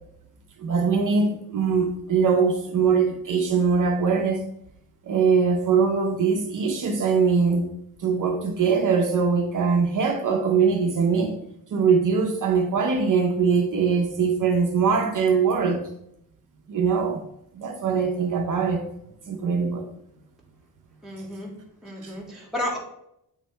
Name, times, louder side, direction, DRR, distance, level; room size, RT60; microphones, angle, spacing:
voice 1, 0.6-4.5 5.0-7.7 8.0-11.4 11.7-15.9 16.7-17.2 17.5-18.9 19.3-19.9 22.0-22.1, right 5 dB, 55° right, 0.7 m, -22 dB
voice 2, 21.0-21.5 21.8-22.8, left 1 dB, ahead, 2.0 m, -32 dB
8.7 x 3.3 x 4.4 m
wide cardioid pair, 145°, 37 cm